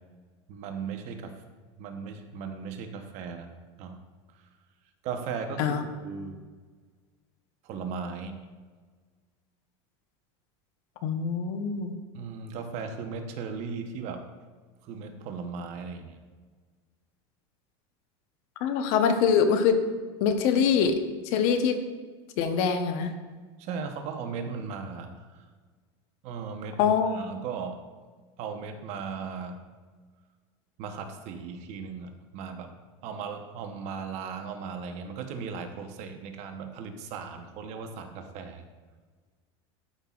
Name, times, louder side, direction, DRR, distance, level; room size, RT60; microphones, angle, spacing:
voice 1, 0.5-1.4 1.8-3.5 3.8-4.0 5.0-6.4 7.6-8.4 12.1-14.2 14.8-16.2 23.6-25.3 26.2-27.8 28.4-29.6 30.8-32.8 33.0-38.6, right 5 dB, 50° right, 5 dB, 0.9 m, -37 dB
voice 2, 11.0-11.9 18.6-19.8 20.2-21.0 21.3-21.8 22.4-23.1 26.8-27.2, left 6 dB, 60° left, 7 dB, 0.9 m, -24 dB
12.5 x 5.4 x 2.4 m, 1.4 s
supercardioid pair, 135°, 15 cm